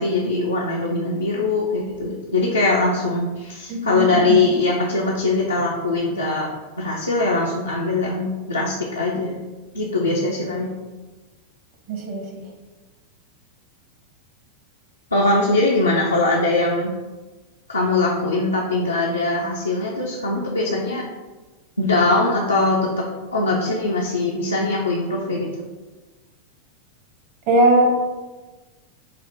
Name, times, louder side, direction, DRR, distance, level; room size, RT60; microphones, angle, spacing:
voice 1, 0.0-9.4 9.7-10.7 15.1-16.9 17.7-21.0 21.8-25.5, left 2 dB, 80° left, -4 dB, 0.5 m, -21 dB
voice 2, 3.7-4.4 11.9-12.2 27.5-27.9, right 1 dB, 45° right, 0 dB, 1.1 m, -19 dB
4.9 x 2.1 x 4.5 m, 1.2 s
figure-of-eight pair, 90°, 0 cm